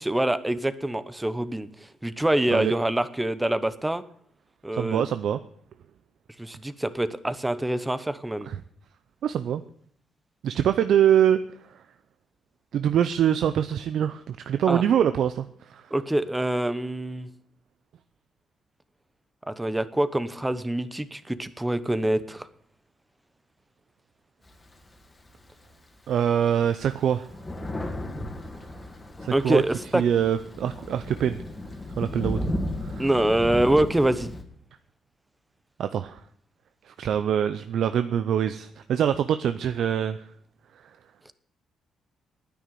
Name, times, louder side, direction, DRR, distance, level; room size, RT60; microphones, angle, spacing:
voice 1, 0.0-1.7 2.0-4.0 4.6-5.0 6.4-8.5 14.7-14.8 15.9-17.3 19.5-22.5 29.3-30.0 33.0-34.3, right 1 dB, 10° right, 13 dB, 0.9 m, -25 dB
voice 2, 4.7-5.4 8.5-8.6 9.2-9.6 10.4-11.4 12.7-15.8 26.1-27.3 29.2-29.6 29.9-31.4 32.0-32.4 32.8-33.1 35.8-36.2 36.9-40.2, right 9 dB, 70° right, 11 dB, 0.6 m, -24 dB
Thunder, 24.4-25.7 26.3-26.4 26.6-34.4, left 1 dB, 20° left, 2.2 m, -34 dB
10.0 x 9.3 x 9.1 m, 0.64 s
cardioid pair, 90°, 0 cm